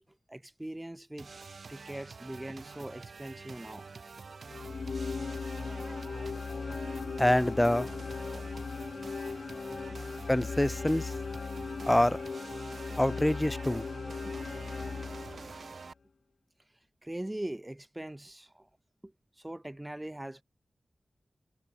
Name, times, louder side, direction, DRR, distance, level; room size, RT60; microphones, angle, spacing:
voice 1, 0.3-1.3 1.7-3.8 9.9-10.0 14.3-14.4 17.0-18.7 19.0-19.1 19.4-20.4, right 1 dB, 20° right, 0.7 m, -41 dB
sound 1, 1.2-15.9, right 4 dB, 80° right, 2.4 m, -47 dB
sound 2, 4.5-15.8, left 4 dB, 80° left, 1.8 m, -38 dB
voice 2, 7.2-7.9 10.3-11.1 11.9-12.2 13.0-13.9, left 1 dB, 15° left, 0.3 m, -25 dB
cardioid pair, 50°, 0 cm